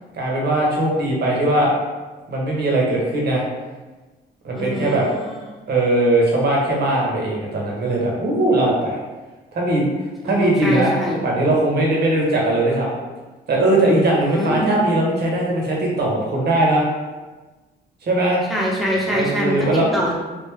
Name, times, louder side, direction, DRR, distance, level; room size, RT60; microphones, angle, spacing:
voice 1, 0.1-1.7 2.3-3.4 4.4-5.1 5.7-9.0 9.5-9.8 10.2-11.0 11.2-13.0 13.5-16.8 18.0-18.4 19.1-19.9, right 1 dB, 55° right, -2 dB, 1.1 m, -19 dB
voice 2, 4.5-5.2 10.2-11.2 14.3-14.8 18.5-19.7 19.9-20.2, equal, ahead, -4 dB, 1.0 m, -24 dB
3.4 x 2.5 x 3.3 m, 1.2 s
cardioid pair, 90°, 20 cm